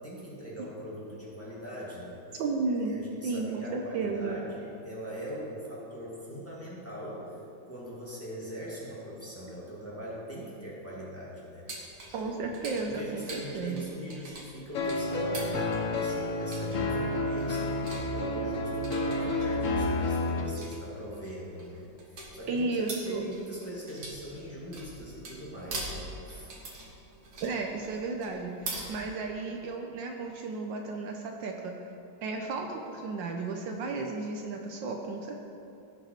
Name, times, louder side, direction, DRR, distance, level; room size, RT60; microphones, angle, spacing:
voice 1, 0.0-2.2 2.7-7.4 7.7-11.7 11.9-12.0 12.7-22.7 23.0-26.5, equal, 5° left, -7 dB, 2.0 m, -41 dB
voice 2, 2.3-2.9 3.2-4.4 12.1-13.9 22.5-23.3 27.4-31.8 32.2-35.5, right 3 dB, 70° right, 2 dB, 1.4 m, -33 dB
sound 1, 11.7-28.9, right 2 dB, 55° right, 2.0 m, -44 dB
sound 2, 14.7-20.4, left 2 dB, 55° left, 0.9 m, -30 dB
16.5 x 5.8 x 4.4 m, 2.7 s
omnidirectional pair, 2.1 m